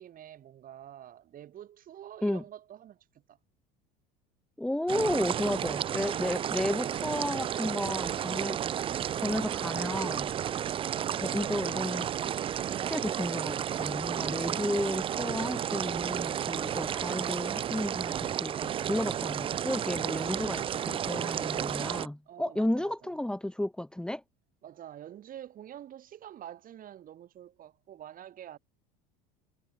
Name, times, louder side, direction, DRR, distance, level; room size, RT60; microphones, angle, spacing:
voice 1, 0.0-3.4 22.3-23.1 24.6-28.6, right 11 dB, 45° right, 3.7 m, -48 dB
voice 2, 4.6-8.6 9.1-10.3 11.2-12.1 12.5-24.2, left 1 dB, 5° left, 1.2 m, -33 dB
sound 1, 4.9-22.1, right 9 dB, 25° right, 0.4 m, -32 dB
hypercardioid pair, 80°, 20 cm